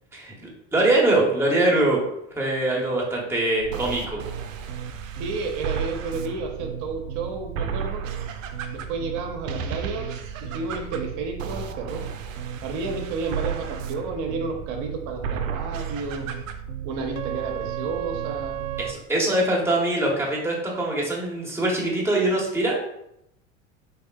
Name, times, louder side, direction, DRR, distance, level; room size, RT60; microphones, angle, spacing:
voice 1, 0.1-2.0 2.3-4.2 18.8-22.8, right 2 dB, 5° right, -3 dB, 1.1 m, -23 dB
sound 1, 3.6-18.9, right 7 dB, 80° right, 0.5 m, -33 dB
voice 2, 5.2-8.0 8.7-10.1 10.4-12.0 12.6-16.3 16.8-18.6, right 4 dB, 50° right, 3 dB, 0.9 m, -31 dB
3.5 x 3.5 x 2.3 m, 0.79 s
hypercardioid pair, 75°, 39 cm